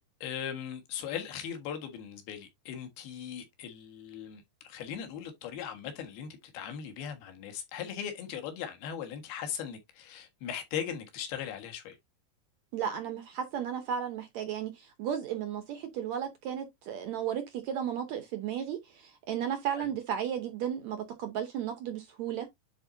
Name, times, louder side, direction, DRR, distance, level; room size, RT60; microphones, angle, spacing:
voice 1, 0.2-4.4 4.7-6.3 6.5-12.0 19.8-19.9, left 8 dB, 80° left, 3.5 m, -39 dB
voice 2, 12.7-22.5, right 9 dB, 75° right, 1.6 m, -34 dB
10.0 x 4.3 x 2.6 m
omnidirectional pair, 4.3 m